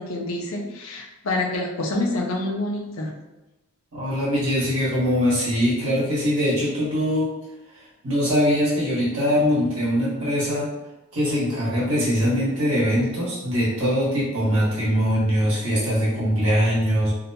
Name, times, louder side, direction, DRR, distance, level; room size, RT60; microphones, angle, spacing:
voice 1, 0.0-3.1, left 2 dB, 75° left, 0 dB, 0.5 m, -27 dB
voice 2, 3.9-7.3 8.0-10.7 11.1-17.1, equal, 90° right, -8 dB, 1.3 m, -22 dB
2.8 x 2.1 x 2.7 m, 1.0 s
head